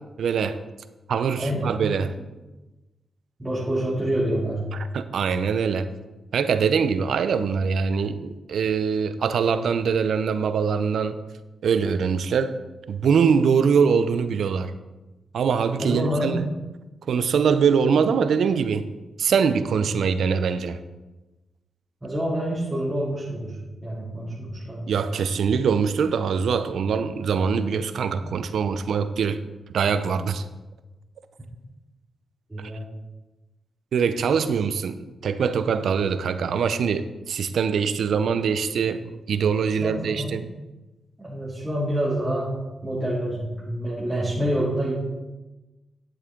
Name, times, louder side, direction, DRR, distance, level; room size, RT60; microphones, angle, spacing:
voice 1, 0.2-0.6 1.1-2.1 4.7-5.9 6.3-11.2 11.6-12.5 12.9-14.7 15.3-16.4 17.1-18.9 19.2-20.8 24.9-29.4 29.7-30.4 33.9-40.5, right 6 dB, 80° right, 12 dB, 0.6 m, -23 dB
voice 2, 1.4-1.7 3.4-4.7 15.8-16.4 19.8-19.9 22.0-23.6 23.8-24.9 32.5-32.9 39.8-40.4 41.2-42.5 42.8-45.0, right 1 dB, 20° right, -9 dB, 3.1 m, -27 dB
10.0 x 8.1 x 3.8 m, 1.1 s
cardioid pair, 55°, 0 cm